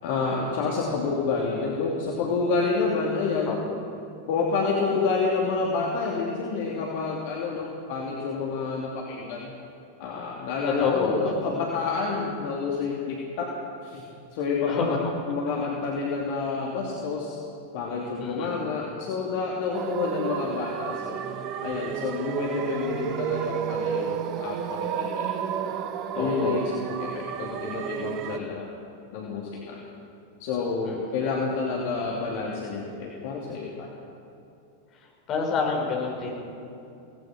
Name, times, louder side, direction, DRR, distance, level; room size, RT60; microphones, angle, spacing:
voice 1, 0.0-3.5 4.3-9.5 10.0-13.5 13.8-17.4 17.7-21.2 21.6-25.3 25.6-25.7 26.2-28.7 29.1-29.8 30.4-33.9, left 4 dB, 50° left, -3 dB, 2.9 m, -29 dB
voice 2, 10.6-11.3 14.7-14.8 18.2-18.6 26.1-26.6 30.8-31.0 35.3-36.3, left 5 dB, 35° left, -1 dB, 5.9 m, -28 dB
sound 1, 19.7-28.4, right 9 dB, 40° right, 0.9 m, -31 dB
24.0 x 19.0 x 6.2 m, 2.7 s
figure-of-eight pair, 90°, 0 cm